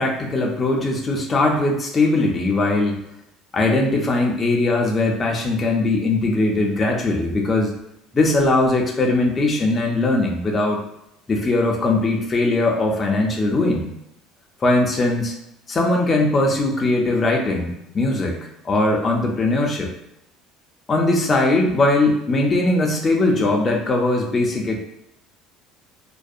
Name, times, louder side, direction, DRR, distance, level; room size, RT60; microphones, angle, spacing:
voice 1, 0.0-3.0 3.5-7.7 8.1-10.8 11.3-13.9 14.6-15.3 15.7-18.4 18.6-19.9 20.9-24.8, left 2 dB, 25° left, 0 dB, 0.4 m, -20 dB
2.6 x 2.1 x 2.4 m, 0.81 s
cardioid pair, 135°, 0 cm